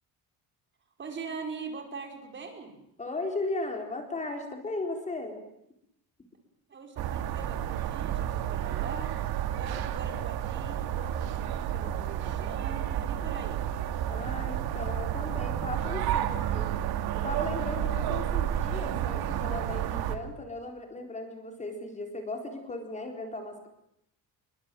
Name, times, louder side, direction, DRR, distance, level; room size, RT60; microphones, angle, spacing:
voice 1, 1.0-2.8 6.7-9.2 9.5-13.6, right 4 dB, 30° right, 4 dB, 4.9 m, -42 dB
voice 2, 3.0-5.4 14.1-16.7 17.1-23.7, left 2 dB, 20° left, 4 dB, 4.2 m, -36 dB
sound 1, 7.0-20.2, right 11 dB, 90° right, 2.7 m, -31 dB
27.5 x 23.0 x 9.2 m, 0.77 s
cardioid pair, 165°, 37 cm